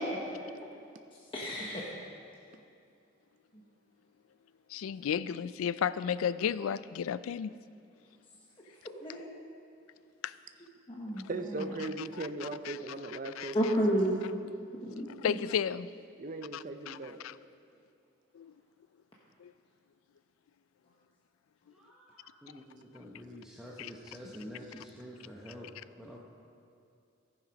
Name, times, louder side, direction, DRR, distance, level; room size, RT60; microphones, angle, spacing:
voice 1, 1.3-1.9 9.0-9.3 10.9-11.7 13.5-14.2 14.8-15.3, equal, 25° left, -4 dB, 1.0 m, -31 dB
voice 2, 4.7-7.5 10.2-10.3 12.2-12.8 13.2-13.7 15.2-15.9 16.5-17.4 18.3-18.5 19.4-19.5 23.8-23.9, left 8 dB, 85° left, 16 dB, 0.3 m, -34 dB
voice 3, 11.3-13.9 16.2-17.2, right 2 dB, 40° right, 7 dB, 0.5 m, -38 dB
voice 4, 21.7-26.2, equal, 5° right, -4 dB, 0.8 m, -48 dB
14.5 x 7.4 x 5.2 m, 2.5 s
head